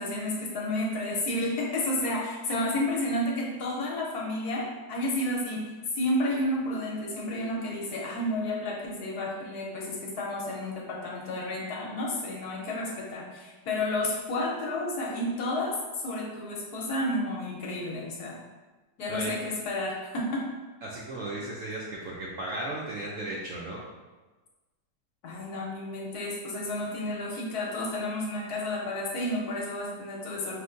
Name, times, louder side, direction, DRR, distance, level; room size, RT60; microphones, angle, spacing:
voice 1, 0.0-5.6 5.9-15.7 16.0-18.4 19.0-20.5 25.2-30.6, left 1 dB, 70° left, -2 dB, 1.2 m, -31 dB
voice 2, 20.8-23.8, right 1 dB, 65° right, -4 dB, 0.8 m, -35 dB
5.3 x 3.1 x 2.5 m, 1.2 s
omnidirectional pair, 1.9 m